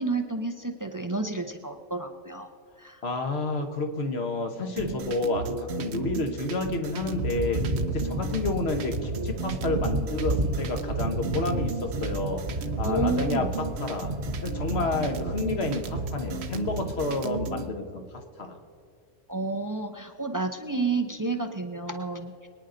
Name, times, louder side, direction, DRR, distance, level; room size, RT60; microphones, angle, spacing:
voice 1, 0.0-2.5 2.8-3.0 4.7-5.1 12.8-13.6 19.3-22.5, right 3 dB, 25° right, 7 dB, 0.5 m, -30 dB
voice 2, 3.0-7.6 7.9-12.4 12.8-13.5 13.8-14.1 14.4-18.6, left 2 dB, 55° left, 5 dB, 1.5 m, -30 dB
sound 1, 4.8-17.6, right 5 dB, 60° right, 0.9 m, -35 dB
sound 2, 7.0-17.2, right 1 dB, 45° right, 1.3 m, -32 dB
23.5 x 9.8 x 3.9 m, 2.4 s
omnidirectional pair, 1.3 m